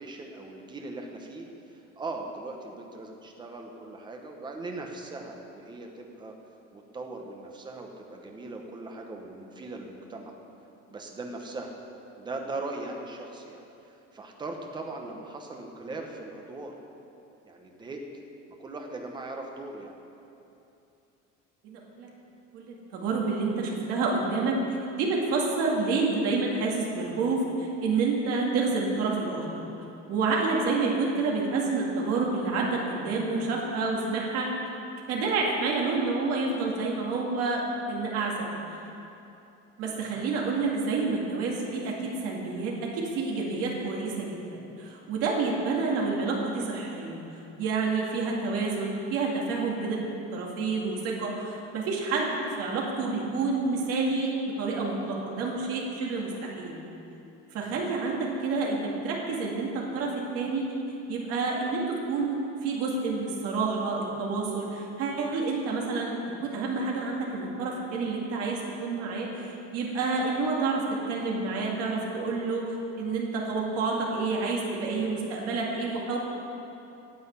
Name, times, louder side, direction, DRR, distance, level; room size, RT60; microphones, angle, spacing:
voice 1, 0.0-1.5 2.0-6.3 6.7-10.3 10.9-11.7 12.2-16.7 17.4-18.0 18.6-19.9 39.8-40.1 45.9-46.1 56.3-56.7, right 2 dB, 15° right, 2 dB, 0.9 m, -39 dB
voice 2, 21.6-22.1 22.5-24.6 24.9-29.5 30.1-34.5 35.1-38.5 39.8-47.2 47.6-50.0 50.3-56.8 57.5-60.7 61.1-76.2, right 3 dB, 50° right, -2 dB, 2.2 m, -29 dB
9.7 x 8.1 x 8.1 m, 2.9 s
cardioid pair, 180°, 30 cm